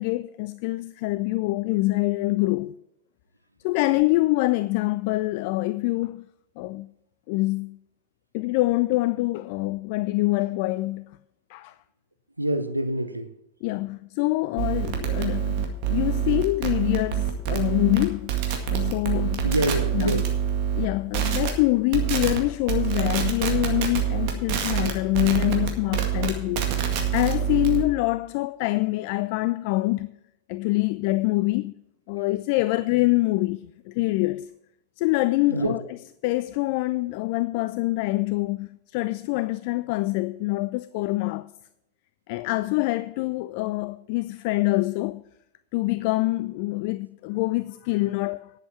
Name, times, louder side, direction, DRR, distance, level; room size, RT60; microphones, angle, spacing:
voice 1, 0.0-2.8 3.6-6.2 6.6-6.9 7.3-7.8 8.3-11.1 11.5-11.7 13.6-18.4 18.7-19.5 19.9-20.2 20.8-26.9 27.1-30.1 30.5-31.7 32.1-34.5 35.0-35.8 36.2-41.5 42.3-45.2 45.7-48.5, left 20 dB, 45° left, 0.3 m, -25 dB
voice 2, 12.4-13.3 19.4-20.3 35.5-35.8, right 1 dB, 85° right, 0.8 m, -26 dB
sound 1, 14.6-20.9 21.1-21.5 21.9-22.4 22.7-27.8, right 9 dB, 45° right, 2.0 m, -26 dB
10.5 x 7.8 x 5.8 m
figure-of-eight pair, 90°, 0 cm